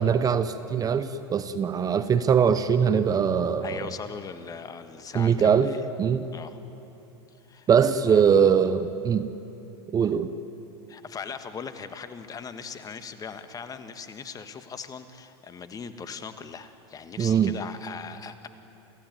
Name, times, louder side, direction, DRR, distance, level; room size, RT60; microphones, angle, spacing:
voice 1, 0.0-3.9 5.1-5.7 6.0-6.3 7.7-9.3 9.9-10.3 17.2-17.5, right 7 dB, 25° right, 12 dB, 0.9 m, -22 dB
voice 2, 3.6-5.8 6.3-6.6 7.5-7.7 8.1-8.5 10.9-18.5, left 6 dB, 25° left, 10 dB, 1.6 m, -39 dB
28.5 x 16.0 x 9.4 m, 2.9 s
hypercardioid pair, 105°, 14 cm